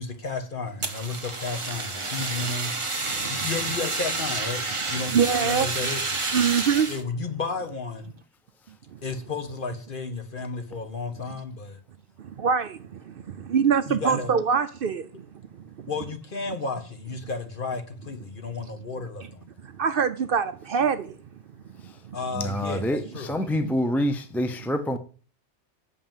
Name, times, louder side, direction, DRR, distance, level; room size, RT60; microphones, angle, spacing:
voice 1, 0.0-2.7 3.3-5.1 5.4-6.0 6.9-8.1 9.0-11.8 13.9-14.3 15.9-19.5 22.1-23.3, left 4 dB, 50° left, 1.4 m, -33 dB
Fire, 0.8-7.0, right 3 dB, 30° right, 1.1 m, -29 dB
voice 2, 3.1-3.5 5.1-5.7 6.3-6.9 8.9-9.0 12.2-15.3 15.5-15.6 19.6-21.2 21.8-22.2, right 6 dB, 60° right, 0.7 m, -25 dB
voice 3, 22.3-25.0, equal, ahead, 0.5 m, -27 dB
6.9 x 5.6 x 7.2 m
omnidirectional pair, 1.2 m